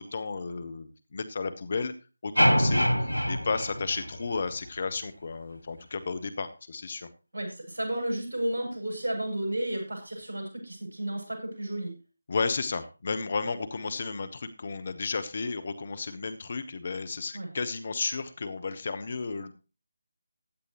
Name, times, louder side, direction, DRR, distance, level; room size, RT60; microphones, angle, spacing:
voice 1, 0.0-1.9 2.2-2.9 3.3-7.1 12.3-19.5, left 4 dB, 40° left, 11 dB, 1.2 m, -33 dB
sound 1, 2.4-4.6, equal, 85° right, 1.5 m, -25 dB
voice 2, 7.3-11.9 17.3-17.5, right 1 dB, 55° right, 1 dB, 7.5 m, -32 dB
16.0 x 10.5 x 3.1 m, 0.32 s
figure-of-eight pair, 155°, 0 cm